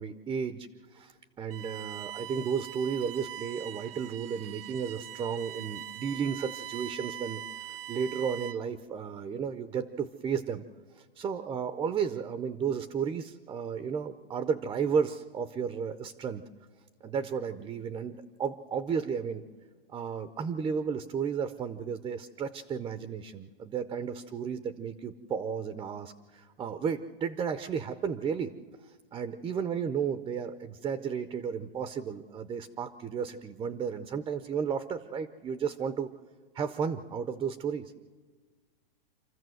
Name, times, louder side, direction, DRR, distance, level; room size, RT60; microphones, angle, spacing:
voice 1, 0.0-7.4 7.9-10.6 10.9-16.4 17.0-19.4 19.9-28.5 29.1-36.1 36.5-38.0, right 6 dB, 15° right, 11 dB, 0.5 m, -33 dB
Bowed string instrument, 1.5-8.8, right 11 dB, 70° right, 0.7 m, -42 dB
27.0 x 14.0 x 7.7 m, 1.5 s
supercardioid pair, 150°, 29 cm